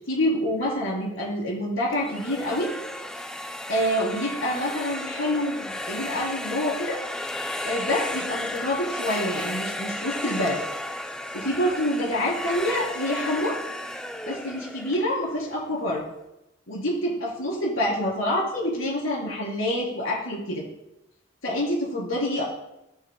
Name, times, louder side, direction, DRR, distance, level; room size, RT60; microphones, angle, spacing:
voice 1, 0.1-2.7 3.5-7.0 7.4-10.6 11.3-13.6 14.3-16.0 16.7-20.6 21.4-22.4, left 1 dB, 85° left, -4 dB, 3.9 m, -27 dB
sound 1, 1.9-15.8, left 1 dB, 5° left, 0.3 m, -34 dB
19.0 x 6.3 x 2.2 m, 0.88 s
head